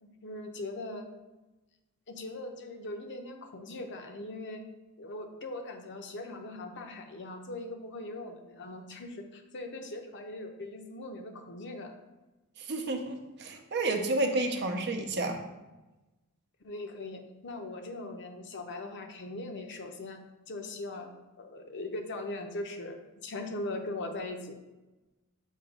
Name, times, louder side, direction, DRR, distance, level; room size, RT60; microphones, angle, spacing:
voice 1, 0.0-1.0 2.1-4.6 5.0-11.9 16.6-20.2 20.5-21.1 21.4-23.0 23.2-24.6, left 2 dB, 55° left, 4 dB, 0.8 m, -40 dB
voice 2, 12.6-15.4, right 2 dB, 50° right, 5 dB, 0.7 m, -30 dB
6.4 x 2.9 x 5.2 m, 1.1 s
head